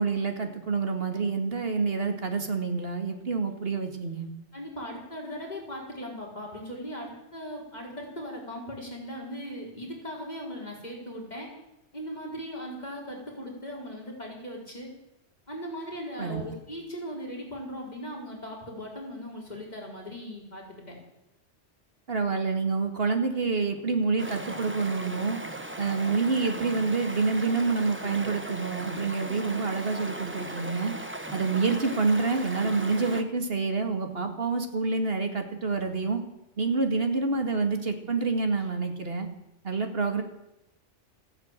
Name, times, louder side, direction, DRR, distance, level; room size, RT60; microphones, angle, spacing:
voice 1, 0.0-4.3 16.2-16.4 22.1-25.4 25.8-30.9 31.3-36.2 36.6-39.3 39.6-40.2, right 4 dB, 55° right, 5 dB, 2.2 m, -27 dB
voice 2, 4.5-11.5 11.9-14.9 15.5-20.9, equal, 35° left, -2 dB, 4.5 m, -38 dB
Stream, 24.2-33.2, right 1 dB, 10° right, 1.1 m, -38 dB
15.0 x 10.5 x 8.9 m, 0.87 s
omnidirectional pair, 1.2 m